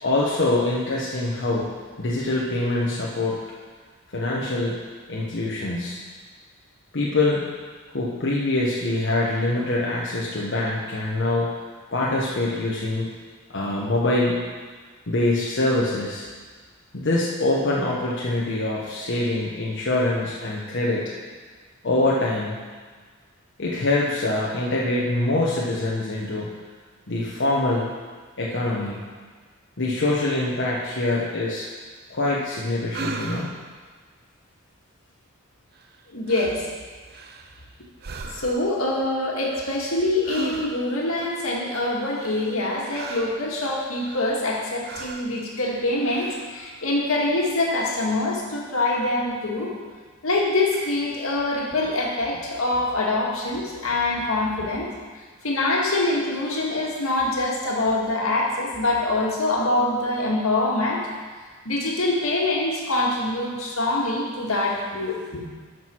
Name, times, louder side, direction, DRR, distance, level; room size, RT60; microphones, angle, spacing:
voice 1, 0.0-1.7 2.0-3.4 4.1-4.8 5.1-6.0 6.9-7.4 7.9-11.5 11.9-13.1 13.5-14.4 15.1-16.3 16.9-21.0 21.8-22.6 23.6-26.5 27.1-27.9 28.4-29.0 29.8-31.7 32.1-33.5, left 2 dB, 60° left, -5 dB, 1.1 m, -24 dB
sound 1, 32.9-33.7 35.8-36.0 36.3-36.7 37.1-37.7 38.0-38.8 40.2-41.0 42.1-43.5 44.0-44.6 44.8-45.3 46.0-46.6, right 4 dB, 50° right, 0.7 m, -37 dB
voice 2, 36.1-36.6 38.2-49.7 50.2-54.9 55.4-61.0 61.7-65.4, left 2 dB, 80° left, -3 dB, 2.0 m, -24 dB
12.0 x 6.3 x 4.6 m, 1.5 s
head